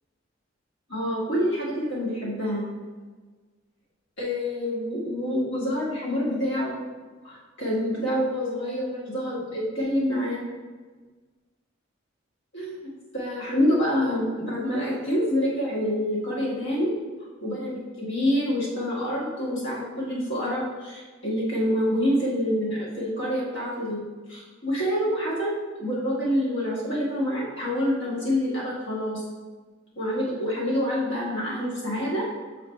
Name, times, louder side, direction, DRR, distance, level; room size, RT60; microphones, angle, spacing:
voice 1, 0.9-2.6 4.2-6.8 7.2-10.4 12.5-12.9 13.1-16.9 17.4-24.0 24.3-29.2 30.0-32.3, equal, 65° left, -5 dB, 1.8 m, -27 dB
7.3 x 4.0 x 3.2 m, 1.4 s
head